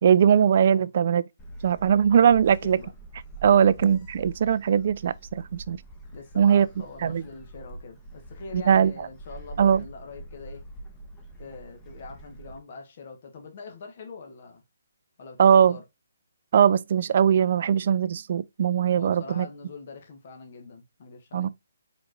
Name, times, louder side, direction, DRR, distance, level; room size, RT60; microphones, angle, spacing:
voice 1, 0.0-1.2 1.6-2.8 3.4-5.8 6.4-6.7 7.0-7.2 8.5-8.9 9.6-9.8 15.4-15.8 16.5-19.5 21.3-21.5, right 8 dB, 50° right, 0.4 m, -20 dB
Gull seagull, 1.4-12.6, right 2 dB, 15° left, 1.0 m, -44 dB
voice 2, 2.2-2.9 3.4-3.7 6.1-10.6 11.4-14.6 15.2-15.8 19.0-21.5, left 4 dB, 45° left, 1.3 m, -43 dB
4.4 x 4.2 x 2.5 m
hypercardioid pair, 155°, 0 cm